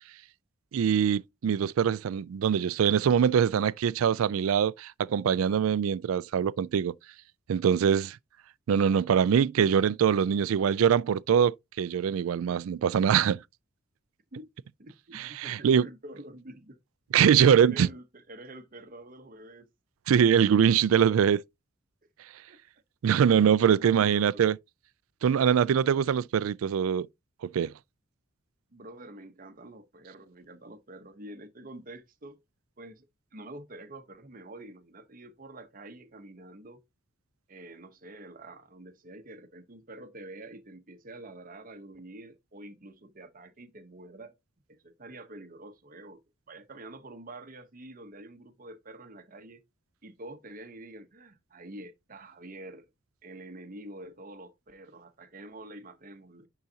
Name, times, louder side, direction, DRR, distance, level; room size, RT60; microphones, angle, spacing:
voice 1, 0.7-6.9 7.5-8.2 8.7-13.4 15.1-15.8 17.1-17.9 20.1-21.4 23.0-24.6 25.2-27.1 27.5-27.7, right 8 dB, 85° right, 0.3 m, -23 dB
voice 2, 14.8-16.8 17.3-19.7 22.5-22.6 23.8-24.4 28.7-32.4 32.8-33.1 33.3-36.8 37.5-44.3 44.7-46.2 46.5-49.6 50.0-52.9 53.2-56.5, right 1 dB, 40° right, 0.9 m, -47 dB
10.5 x 3.9 x 2.8 m
head